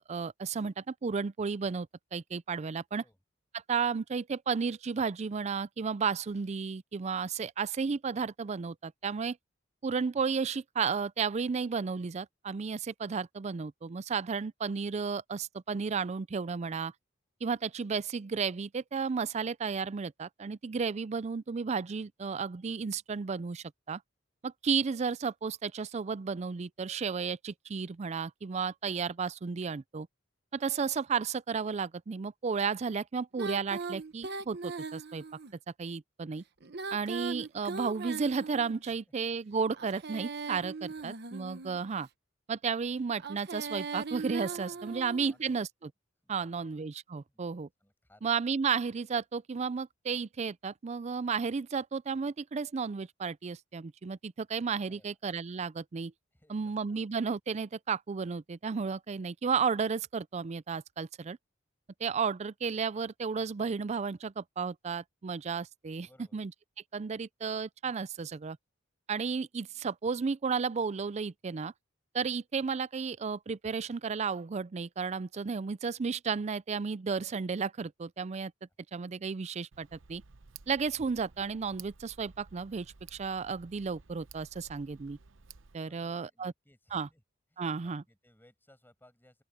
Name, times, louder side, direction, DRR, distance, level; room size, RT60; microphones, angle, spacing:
voice 1, 0.0-1.9 2.1-3.0 3.5-9.4 9.8-16.9 17.4-24.0 24.4-30.1 30.5-35.2 35.8-36.4 36.9-42.1 42.5-45.7 46.3-47.7 48.2-56.1 56.5-61.4 62.0-66.1 66.3-66.5 66.9-68.6 69.1-71.7 72.1-78.5 78.9-80.2 80.7-85.2 85.7-86.5 86.9-87.1 87.6-88.0, right 5 dB, 35° right, 0.4 m, -33 dB
Female singing, 33.4-35.5 36.6-38.9 39.7-41.9 43.1-45.4, right 4 dB, 55° right, 1.1 m, -39 dB
voice 2, 44.7-45.6 46.2-46.7 47.3-47.4 47.8-48.3 54.9-55.2 56.3-57.0 66.0-66.4 85.8-87.2 87.5-89.4, left 1 dB, 10° left, 7.1 m, -64 dB
Tick, 79.7-85.8, right 6 dB, 75° right, 0.8 m, -54 dB
open air
head